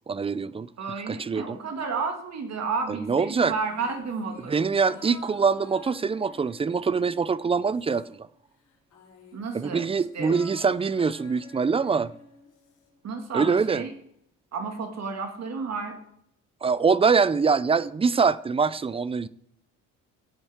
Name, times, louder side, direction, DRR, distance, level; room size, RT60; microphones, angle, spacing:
voice 1, 0.1-0.7 1.1-1.6 3.0-3.5 4.5-8.2 9.5-12.1 13.3-13.8 16.6-19.3, right 5 dB, 20° right, 0.4 m, -24 dB
voice 2, 0.8-4.7 9.3-9.8 10.1-10.3 13.0-13.9 14.5-16.0, right 4 dB, 55° right, 2.1 m, -32 dB
sound 1, 3.5-8.3 8.6-12.9 13.2-13.3, left 4 dB, 65° left, 4.3 m, -50 dB
17.0 x 8.1 x 3.6 m
cardioid pair, 95°, 32 cm